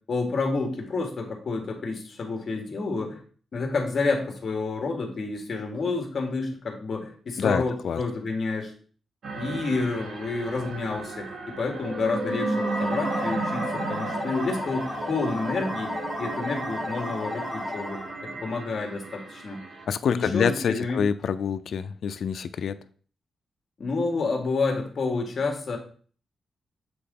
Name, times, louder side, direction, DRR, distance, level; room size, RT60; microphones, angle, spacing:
voice 1, 0.1-3.2 3.5-8.7 9.4-19.6 20.1-21.0 23.8-25.8, left 3 dB, 45° left, 2 dB, 1.6 m, -29 dB
voice 2, 7.4-8.0 19.9-22.8, left 7 dB, 65° left, 11 dB, 0.4 m, -26 dB
sound 1, 9.2-19.8, right 3 dB, 60° right, 1.1 m, -34 dB
sound 2, 12.5-18.2, left 2 dB, 10° left, 2.4 m, -34 dB
7.8 x 3.7 x 3.8 m, 0.44 s
wide cardioid pair, 125°, 0 cm